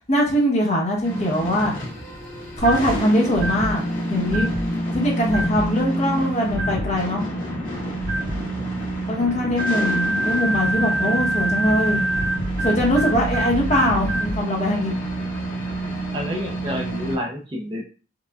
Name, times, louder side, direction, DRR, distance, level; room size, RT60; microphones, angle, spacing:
voice 1, 0.1-1.7 2.6-4.5 4.9-7.2 9.1-12.0 12.6-14.9, equal, 35° left, -2 dB, 0.9 m, -22 dB
sound 1, 1.0-17.2, right 1 dB, 80° left, 1.7 m, -28 dB
sound 2, 2.6-2.9 3.3-3.7 4.3-4.6 5.3-5.7 6.5-6.9 8.0-8.4 9.6-14.4, right 1 dB, 85° right, 1.4 m, -25 dB
voice 2, 8.6-8.9 9.7-9.9 16.1-17.8, left 1 dB, 25° right, 0 dB, 0.5 m, -30 dB
4.9 x 2.3 x 2.3 m, 0.36 s
head